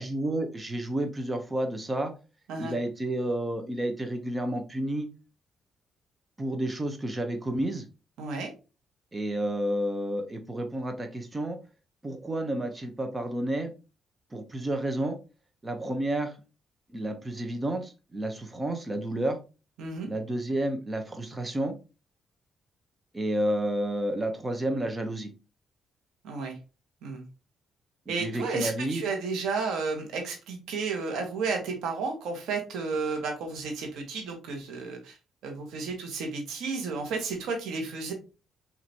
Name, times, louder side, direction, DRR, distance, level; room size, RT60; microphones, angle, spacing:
voice 1, 0.0-2.1 2.6-5.1 6.4-7.8 9.1-11.6 12.0-13.7 14.3-15.2 15.6-16.3 16.9-19.4 20.1-21.8 23.1-25.3 28.1-29.0, right 1 dB, 20° right, 5 dB, 1.0 m, -30 dB
voice 2, 8.2-8.5 19.8-20.1 26.2-26.6 27.0-27.2 28.1-35.2 35.4-38.1, right 4 dB, 90° right, 3 dB, 1.5 m, -32 dB
5.9 x 2.9 x 2.9 m, 0.31 s
cardioid pair, 110°, 0 cm